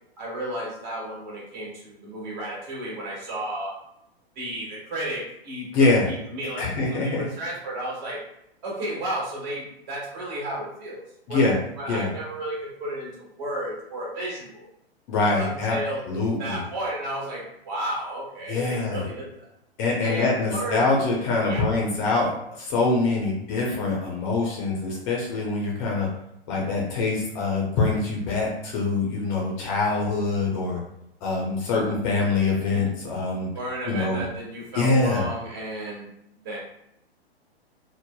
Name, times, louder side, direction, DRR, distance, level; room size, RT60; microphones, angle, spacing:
voice 1, 0.2-3.7 4.3-5.7 6.1-8.2 8.6-11.0 11.3-11.5 11.8-14.7 15.4-16.0 16.4-19.5 20.0-20.8 21.5-21.6 33.5-36.1 36.4-36.6, right 1 dB, 45° right, -5 dB, 1.3 m, -33 dB
voice 2, 5.7-6.1 6.6-7.3 11.3-11.6 11.9-12.1 15.1-15.8 16.1-16.6 18.5-19.0 19.8-26.1 26.5-30.8 31.2-33.5 33.9-34.3 34.7-35.3, left 3 dB, 30° left, -3 dB, 0.6 m, -24 dB
3.2 x 2.0 x 2.2 m, 0.79 s
figure-of-eight pair, 110°, 32 cm